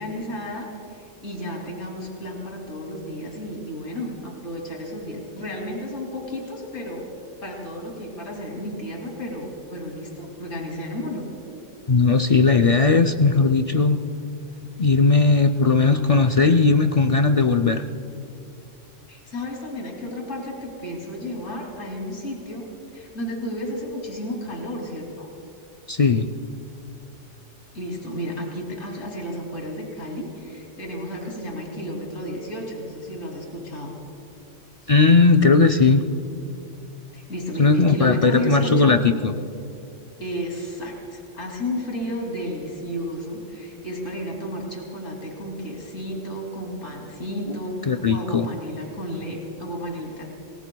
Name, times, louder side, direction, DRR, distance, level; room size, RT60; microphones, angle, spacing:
voice 1, 0.0-7.0 7.4-11.3 19.1-22.6 22.9-25.3 27.7-33.9 37.1-38.9 40.2-50.3, equal, 75° left, -1 dB, 3.2 m, -32 dB
voice 2, 11.9-14.0 14.8-17.8 25.9-26.3 34.9-36.0 37.6-39.3 47.5-47.6 47.9-48.5, left 4 dB, 50° left, 5 dB, 0.4 m, -17 dB
29.0 x 20.5 x 2.3 m, 2.6 s
omnidirectional pair, 1.3 m